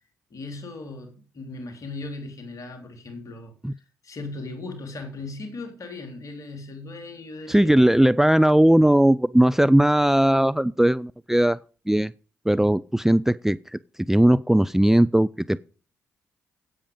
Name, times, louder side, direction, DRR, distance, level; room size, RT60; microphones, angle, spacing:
voice 1, 0.3-7.7, left 3 dB, 50° left, 3.8 m, -38 dB
voice 2, 7.5-11.6 11.9-12.1 12.5-13.8 14.1-15.6, right 1 dB, 5° right, 0.4 m, -18 dB
10.0 x 8.8 x 5.3 m
hypercardioid pair, 40°, 7 cm